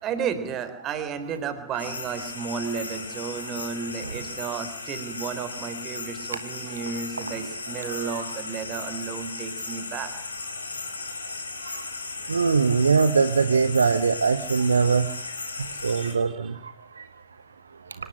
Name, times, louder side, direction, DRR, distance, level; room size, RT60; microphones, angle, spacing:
voice 1, 0.0-10.1 15.9-16.5, right 6 dB, 35° right, 11 dB, 3.8 m, -33 dB
sound 1, 1.8-16.1, left 3 dB, 80° left, 3.5 m, -36 dB
voice 2, 12.3-15.1 15.6-17.0, right 5 dB, 75° right, 13 dB, 1.0 m, -23 dB
25.5 x 18.0 x 8.8 m, 0.70 s
figure-of-eight pair, 90°, 0 cm